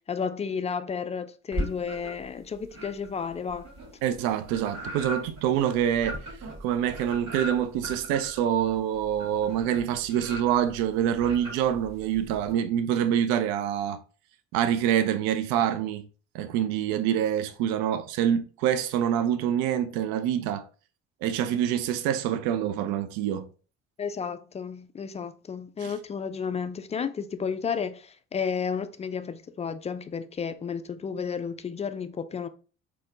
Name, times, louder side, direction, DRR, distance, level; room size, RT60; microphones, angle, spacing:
voice 1, 0.1-3.7 24.0-32.5, left 6 dB, 20° left, 0.3 m, -32 dB
Hand on wet glass, 1.5-2.3 2.7-12.5, equal, 45° right, 1.7 m, -38 dB
voice 2, 4.0-6.2 6.6-14.0 14.5-16.0 16.3-20.6 21.2-23.5 25.8-25.9, right 10 dB, 65° right, 0.5 m, -26 dB
4.1 x 2.2 x 3.8 m
hypercardioid pair, 50°, 39 cm